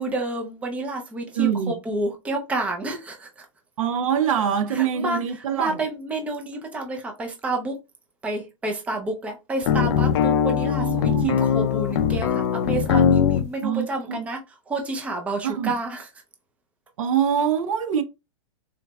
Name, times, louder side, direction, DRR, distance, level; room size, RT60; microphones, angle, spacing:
voice 1, 0.0-3.5 4.7-7.8 8.2-14.4 14.7-16.1, right 2 dB, 10° right, 0.5 m, -30 dB
voice 2, 1.3-1.7 3.8-5.8 10.8-11.4 13.6-14.2 15.4-15.7 17.0-18.0, right 8 dB, 85° right, 0.6 m, -24 dB
sound 1, 9.6-13.5, left 8 dB, 50° left, 0.4 m, -21 dB
3.9 x 3.2 x 2.2 m
supercardioid pair, 150°, 17 cm